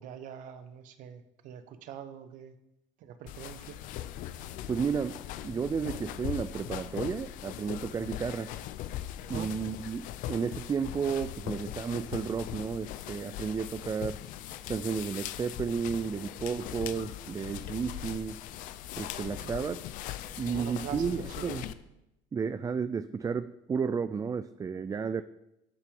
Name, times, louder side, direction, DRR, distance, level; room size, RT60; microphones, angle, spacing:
voice 1, 0.0-2.5 3.0-3.8 9.3-9.5 19.4-19.5 20.4-21.5, right 9 dB, 60° right, 10 dB, 1.0 m, -44 dB
sound 1, 3.3-21.7, left 12 dB, 65° left, 0.6 m, -40 dB
voice 2, 4.7-8.5 9.3-14.2 14.7-18.4 19.0-19.8 20.4-21.7 22.3-25.2, right 6 dB, 25° right, 13 dB, 0.4 m, -32 dB
12.0 x 4.5 x 5.3 m, 0.88 s
hypercardioid pair, 75°, 15 cm